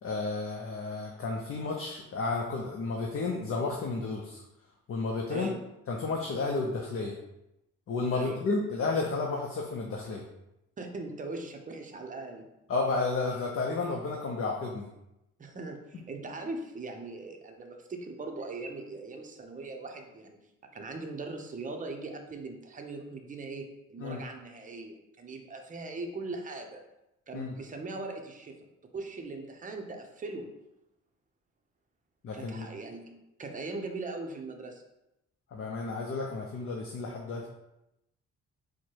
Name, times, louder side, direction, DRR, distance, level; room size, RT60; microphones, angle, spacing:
voice 1, 0.0-4.4 4.9-5.5 5.9-7.2 7.9-10.2 12.7-14.9 24.0-24.2 27.3-27.5 32.2-32.7 35.5-37.5, left 3 dB, 45° left, 0 dB, 0.6 m, -32 dB
voice 2, 8.1-8.4 10.8-12.5 15.4-20.5 20.7-26.8 27.3-28.6 28.9-30.5 32.3-34.8, right 3 dB, 25° right, 4 dB, 0.6 m, -40 dB
4.4 x 2.2 x 4.6 m, 0.89 s
cardioid pair, 90°, 30 cm